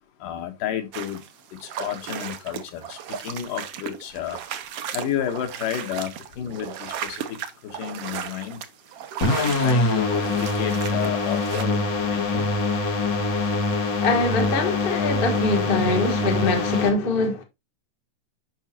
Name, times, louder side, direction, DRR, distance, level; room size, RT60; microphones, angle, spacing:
voice 1, 0.2-1.3 1.5-4.4 4.9-8.7 9.3-12.5, left 10 dB, 85° left, 2.9 m, -31 dB
sound 1, 0.9-11.6, right 9 dB, 65° right, 1.5 m, -35 dB
sound 2, 9.2-16.9, left 3 dB, 45° left, 1.8 m, -24 dB
voice 2, 14.0-17.4, left 3 dB, 70° left, 0.5 m, -23 dB
9.1 x 5.9 x 2.8 m
omnidirectional pair, 3.6 m